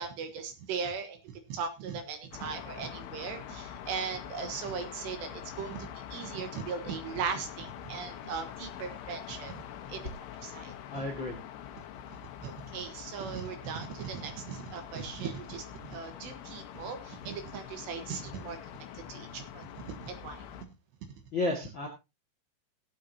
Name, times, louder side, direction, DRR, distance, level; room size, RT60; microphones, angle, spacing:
voice 1, 0.0-9.6 9.9-10.1 10.4-10.7 12.4-18.6 19.1-20.4, right 6 dB, 70° right, 7 dB, 3.0 m, -38 dB
sound 1, 2.3-20.7, left 9 dB, 75° left, 3.5 m, -45 dB
voice 2, 10.9-11.4 21.3-21.9, left 2 dB, 45° left, 2 dB, 1.5 m, -32 dB
19.5 x 8.4 x 2.8 m, 0.26 s
omnidirectional pair, 5.9 m